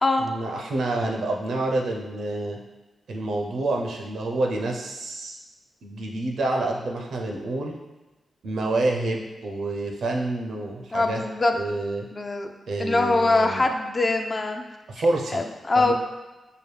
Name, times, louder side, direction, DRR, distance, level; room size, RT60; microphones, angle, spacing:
voice 1, 0.2-2.6 3.1-5.4 5.8-7.8 8.4-11.2 11.5-12.1 12.7-13.7 14.9-15.4 15.8-15.9, right 2 dB, 75° right, 1 dB, 0.5 m, -28 dB
voice 2, 10.9-11.5 12.1-12.5 12.8-14.6 15.3-15.9, left 2 dB, 35° left, 5 dB, 0.4 m, -23 dB
4.8 x 2.3 x 3.2 m, 1.1 s
cardioid pair, 55°, 0 cm